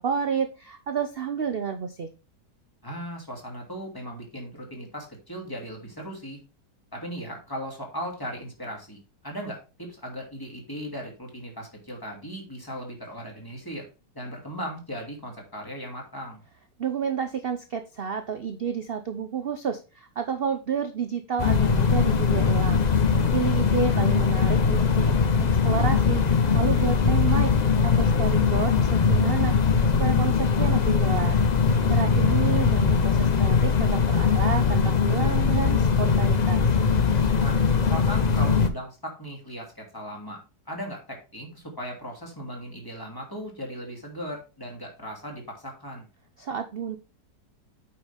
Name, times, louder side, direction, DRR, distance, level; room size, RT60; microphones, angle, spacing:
voice 1, 0.0-2.1 16.8-22.8 23.3-27.5 27.8-29.6 29.9-31.4 31.9-36.7 46.4-47.0, right 7 dB, 90° right, 8 dB, 0.5 m, -30 dB
voice 2, 2.8-6.4 6.9-13.9 14.1-16.4 32.1-32.3 37.4-40.4 40.7-46.1, equal, 10° left, -1 dB, 2.6 m, -37 dB
sound 1, 21.4-38.7, left 5 dB, 60° left, 0.4 m, -21 dB
8.7 x 5.8 x 3.4 m, 0.31 s
omnidirectional pair, 1.9 m